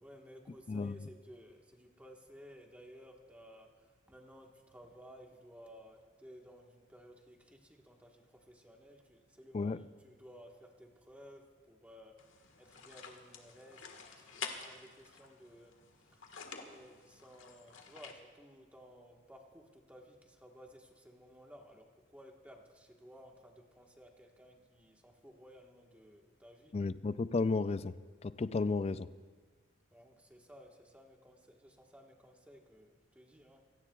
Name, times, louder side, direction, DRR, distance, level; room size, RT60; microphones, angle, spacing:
voice 1, 0.0-15.7 16.1-16.2 16.6-26.7 29.9-33.6, equal, 5° right, 1.4 m, -57 dB
sound 1, 12.2-18.1, left 5 dB, 70° left, 1.6 m, -49 dB
voice 2, 26.7-27.9 28.2-29.1, left 3 dB, 30° left, 0.3 m, -33 dB
27.5 x 17.0 x 2.4 m
head